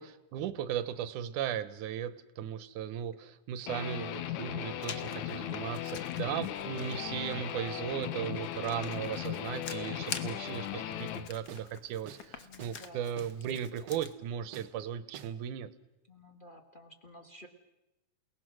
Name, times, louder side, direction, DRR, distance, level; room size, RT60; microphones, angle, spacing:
voice 1, 0.0-15.7, right 9 dB, 85° right, 14 dB, 2.4 m, -37 dB
Guitar, 3.7-11.3, left 11 dB, 80° left, 2.4 m, -37 dB
Writing, 4.8-14.1, left 6 dB, 60° left, 1.0 m, -47 dB
sound 1, 11.5-11.7 12.1-12.3 12.6-12.8 13.2-13.4 13.9-14.1 14.5-14.7 15.1-15.4, right 9 dB, 65° right, 2.0 m, -49 dB
voice 2, 12.4-13.1 16.1-17.5, equal, 40° left, 4 dB, 0.6 m, -53 dB
29.0 x 19.0 x 6.2 m, 0.96 s
omnidirectional pair, 3.5 m